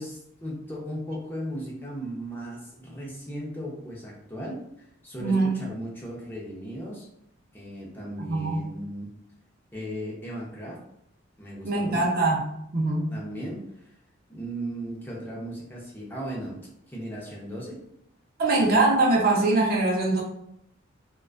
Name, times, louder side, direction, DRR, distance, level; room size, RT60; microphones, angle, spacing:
voice 1, 0.0-7.1 7.5-9.1 9.7-10.8 11.4-12.2 13.1-14.0 14.3-17.8 18.6-18.9, equal, 10° left, -4 dB, 0.5 m, -37 dB
voice 2, 5.2-5.6 8.2-8.6 11.6-12.4 12.7-13.1 18.4-20.2, right 2 dB, 50° right, -1 dB, 0.5 m, -22 dB
2.4 x 2.2 x 2.4 m, 0.76 s
head